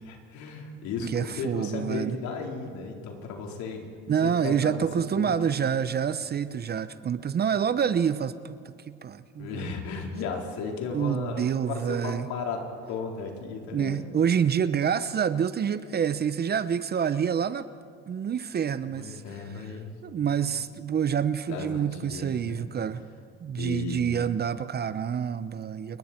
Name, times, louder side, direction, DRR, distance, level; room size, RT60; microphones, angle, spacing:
voice 1, 0.0-3.9 4.2-4.9 5.2-5.5 9.4-14.0 18.8-20.0 20.4-20.6 21.5-22.7 23.6-24.0, left 4 dB, 70° left, 1 dB, 4.4 m, -35 dB
voice 2, 1.0-2.2 4.1-9.7 10.9-12.3 13.7-17.7 18.1-19.3 20.0-23.0 23.4-26.0, right 8 dB, 35° right, 14 dB, 0.8 m, -27 dB
29.5 x 21.5 x 4.5 m, 2.5 s
supercardioid pair, 95°, 30 cm